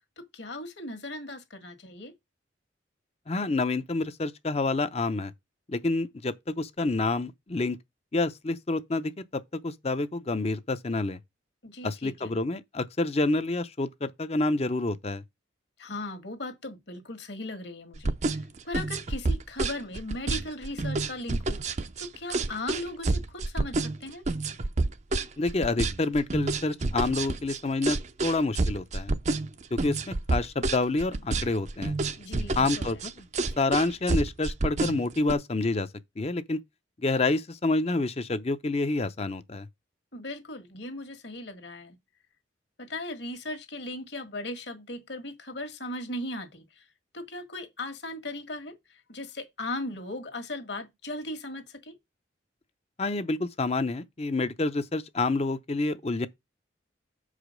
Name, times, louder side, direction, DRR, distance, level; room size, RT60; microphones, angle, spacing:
voice 1, 0.2-2.1 11.6-12.3 15.8-18.1 18.6-21.6 22.0-24.2 32.2-33.0 40.1-42.0 42.8-46.8 47.1-52.0, left 2 dB, 60° left, 1.6 m, -38 dB
voice 2, 3.3-5.3 5.7-7.8 8.1-11.2 11.8-15.2 25.4-29.1 29.7-32.0 32.6-33.3 33.6-35.9 36.2-36.6 37.0-39.7 53.0-56.3, left 2 dB, 35° left, 0.6 m, -28 dB
sound 1, 17.9-35.3, right 3 dB, 35° right, 0.5 m, -29 dB
7.0 x 5.0 x 5.1 m
head